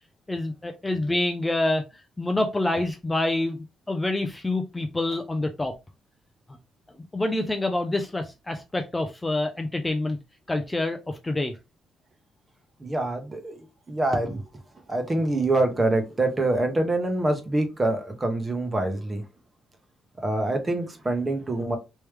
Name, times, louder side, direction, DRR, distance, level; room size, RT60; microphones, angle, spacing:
voice 1, 0.3-1.8 2.2-5.7 7.1-10.2 10.5-11.5, left 2 dB, 15° left, 0.5 m, -27 dB
voice 2, 12.8-14.5 14.9-19.2 20.2-21.8, right 2 dB, 25° right, 1.1 m, -25 dB
3.3 x 3.0 x 3.3 m
cardioid pair, 90°, 0 cm